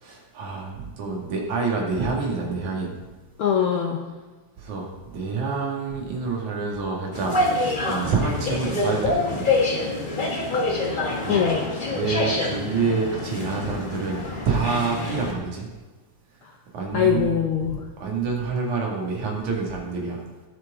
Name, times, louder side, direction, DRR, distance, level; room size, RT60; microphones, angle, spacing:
voice 1, 0.0-3.0 4.6-9.5 11.2-11.5 11.9-15.7 16.7-17.3 18.0-20.2, right 4 dB, 75° right, -1 dB, 3.5 m, -27 dB
voice 2, 3.4-4.0 10.5-10.6 11.3-11.6 16.4-16.5 16.9-17.8, left 8 dB, 70° left, 2 dB, 1.3 m, -23 dB
sound 1, 7.1-15.3, left 2 dB, 35° left, 0.8 m, -26 dB
18.0 x 7.4 x 3.7 m, 1.3 s
omnidirectional pair, 3.4 m